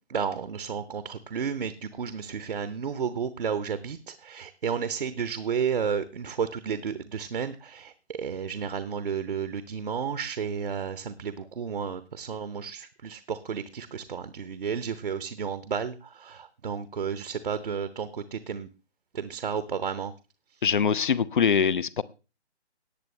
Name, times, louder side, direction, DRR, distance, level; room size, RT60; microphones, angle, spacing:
voice 1, 0.1-18.7 19.1-20.1, right 6 dB, 50° right, 13 dB, 0.8 m, -32 dB
voice 2, 20.6-22.0, left 6 dB, 45° left, 21 dB, 0.6 m, -23 dB
18.5 x 7.8 x 3.2 m, 0.31 s
figure-of-eight pair, 145°, 34 cm